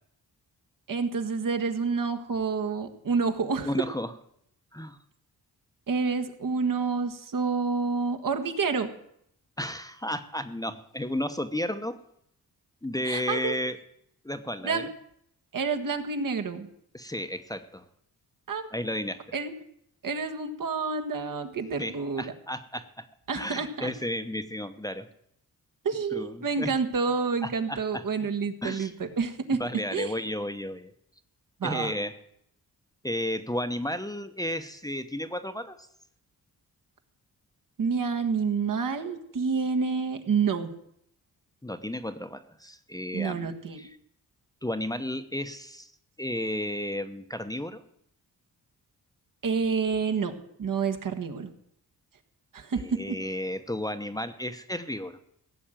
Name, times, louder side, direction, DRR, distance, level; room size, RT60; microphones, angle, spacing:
voice 1, 0.9-3.7 5.9-8.9 13.0-13.6 14.6-14.9 15.5-16.7 18.5-18.6 19.3-19.5 20.0-22.2 23.3-23.9 25.9-29.6 29.9-30.1 31.6-31.9 37.8-40.7 43.1-43.9 49.4-50.3 50.6-51.5 52.5-53.2, right 5 dB, 60° right, 5 dB, 1.6 m, -28 dB
voice 2, 3.6-4.1 4.7-5.0 9.6-12.0 12.8-13.8 14.2-14.9 16.9-17.8 18.7-19.2 21.8-23.0 23.3-25.1 26.1-26.7 27.4-28.0 28.6-28.9 29.6-30.9 31.6-32.1 33.0-35.9 41.6-43.5 43.8-44.0 44.6-45.9 46.2-47.8 52.7-55.2, left 1 dB, 10° left, 9 dB, 0.9 m, -33 dB
16.0 x 6.4 x 9.0 m, 0.72 s
cardioid pair, 85°, 37 cm